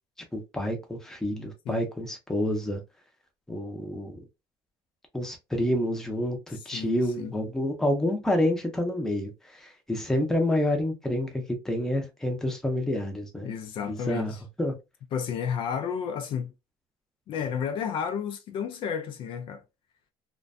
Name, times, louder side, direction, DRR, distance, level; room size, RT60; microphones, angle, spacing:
voice 1, 0.3-2.8 3.5-4.2 5.1-13.5 13.8-14.3 14.6-14.7, left 1 dB, 5° left, 0.6 m, -28 dB
voice 2, 6.7-7.3 13.4-14.4 15.1-16.5 17.3-19.6, left 7 dB, 55° left, 0.4 m, -32 dB
2.5 x 2.1 x 2.4 m
cardioid pair, 135°, 11 cm